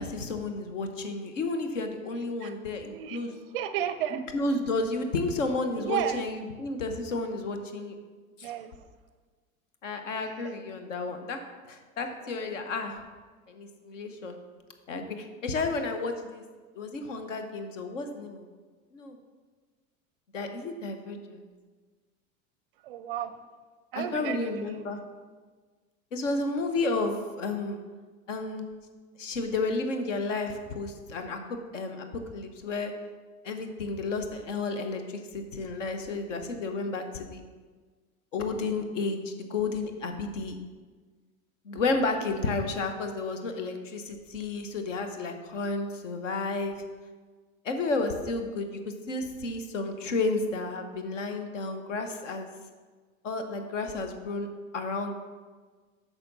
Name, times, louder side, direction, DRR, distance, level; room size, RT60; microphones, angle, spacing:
voice 1, 0.0-3.4 4.1-7.9 8.4-8.5 9.8-11.4 11.7-13.0 13.5-14.4 14.9-16.4 16.7-18.5 18.9-19.2 20.3-21.5 23.9-25.0 26.1-27.8 28.3-28.6 29.2-31.4 31.7-32.1 32.3-32.9 33.4-37.4 38.3-40.6 41.6-46.8 47.6-52.5 53.2-54.5 54.7-55.1, left 3 dB, 60° left, 6 dB, 1.0 m, -32 dB
voice 2, 2.8-4.2 5.8-6.3 8.4-8.8 10.2-10.6 12.0-12.2 22.8-23.3 23.9-24.9, right 10 dB, 40° right, 11 dB, 0.5 m, -34 dB
8.7 x 5.9 x 4.0 m, 1.4 s
figure-of-eight pair, 85°, 42 cm